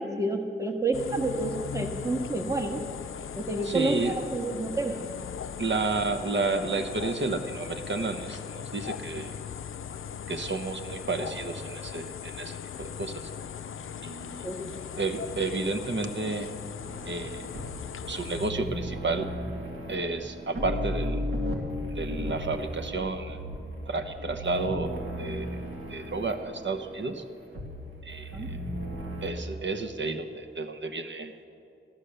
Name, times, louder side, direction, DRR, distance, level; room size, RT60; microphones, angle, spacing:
voice 1, 0.0-2.8 3.4-5.0 14.4-14.7 28.3-28.5, right 2 dB, 15° right, 3 dB, 1.5 m, -29 dB
sound 1, 0.9-18.5, left 8 dB, 90° left, 0.4 m, -39 dB
voice 2, 3.6-4.2 5.6-9.3 10.3-13.3 14.0-14.4 15.0-16.5 17.0-17.5 18.1-19.3 19.9-21.2 21.9-23.4 23.9-25.6 25.9-27.2 28.0-28.6 29.2-31.5, right 3 dB, 65° right, 8 dB, 1.0 m, -31 dB
sound 2, 16.8-29.3, left 1 dB, 90° right, 1.9 m, -36 dB
14.5 x 12.0 x 6.7 m, 2.7 s
wide cardioid pair, 60°, 20 cm